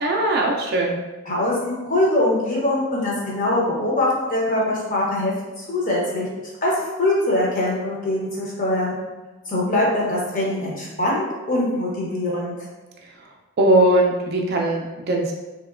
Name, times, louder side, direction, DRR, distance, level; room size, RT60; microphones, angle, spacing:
voice 1, 0.0-1.0 13.6-15.3, right 1 dB, 45° right, 1 dB, 0.3 m, -19 dB
voice 2, 1.3-6.3 6.6-6.7 7.0-9.0 9.5-12.5, left 1 dB, 35° left, -5 dB, 0.7 m, -22 dB
2.8 x 2.8 x 2.4 m, 1.2 s
head